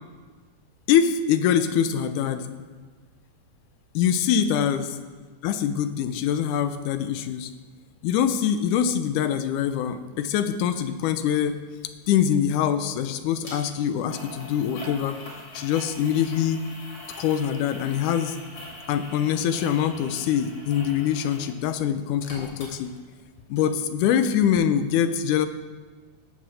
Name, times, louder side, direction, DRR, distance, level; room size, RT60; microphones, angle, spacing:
voice 1, 0.9-2.6 3.9-4.9 5.4-7.5 8.0-11.6 12.1-15.2 15.5-16.7 17.2-18.4 18.9-22.9 23.5-25.5, left 9 dB, 85° left, 10 dB, 2.2 m, -24 dB
sound 1, 13.4-13.6 14.1-21.5 21.8-23.3 23.6-23.7, left 1 dB, 45° left, 3.8 m, -42 dB
16.0 x 7.3 x 6.3 m, 1.4 s
omnidirectional pair, 3.5 m